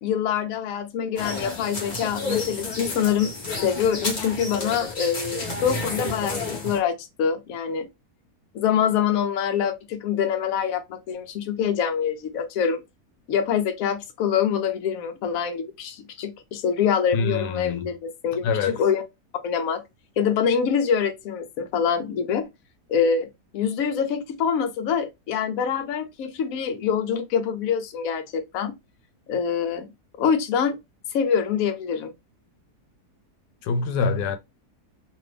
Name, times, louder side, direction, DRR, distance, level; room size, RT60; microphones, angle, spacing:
voice 1, 0.0-3.3 3.6-7.9 8.5-12.8 13.3-18.5 18.8-19.0 19.4-19.8 20.2-22.4 22.9-23.3 23.5-28.7 29.3-29.9 30.2-30.8 31.1-32.1, left 7 dB, 65° left, 1.0 m, -25 dB
sound 1, 1.2-6.8, left 3 dB, 30° left, 1.1 m, -31 dB
voice 2, 17.1-17.9 18.4-18.8 33.6-34.4, left 4 dB, 90° left, 1.1 m, -25 dB
2.7 x 2.6 x 3.2 m
omnidirectional pair, 1.7 m